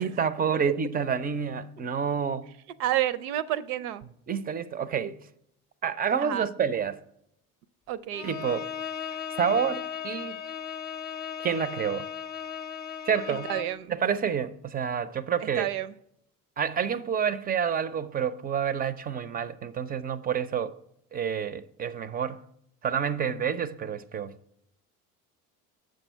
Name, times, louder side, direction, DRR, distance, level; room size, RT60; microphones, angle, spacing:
voice 1, 0.0-2.5 4.3-5.2 5.8-7.0 8.2-8.7 9.4-10.4 11.4-12.1 13.1-13.5 13.9-15.7 16.6-20.7 21.1-22.4 22.8-24.3, right 7 dB, 20° right, 0.4 m, -28 dB
voice 2, 2.8-4.0 6.2-6.5 7.9-8.3 13.3-13.9 15.6-15.9, right 13 dB, 75° right, 0.6 m, -30 dB
Bowed string instrument, 8.1-13.8, left 8 dB, 20° left, 0.6 m, -36 dB
7.5 x 6.3 x 4.4 m
hypercardioid pair, 70°, 45 cm